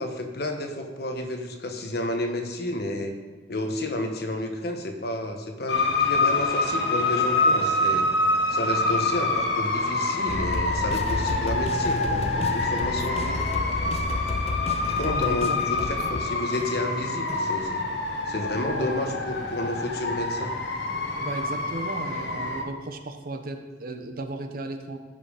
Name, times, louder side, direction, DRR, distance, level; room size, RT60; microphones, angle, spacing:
voice 1, 0.0-3.2 3.5-8.0 8.5-13.4 14.9-17.8 18.3-20.5, left 1 dB, 60° left, 4 dB, 1.2 m, -31 dB
sound 1, 5.7-22.6, left 2 dB, 80° left, 1.2 m, -26 dB
sound 2, 10.3-17.4, left 2 dB, 35° left, 0.4 m, -31 dB
voice 2, 15.0-15.6 18.7-19.1 21.2-25.0, right 2 dB, 55° right, 6 dB, 1.0 m, -35 dB
15.0 x 5.2 x 5.0 m, 1.4 s
head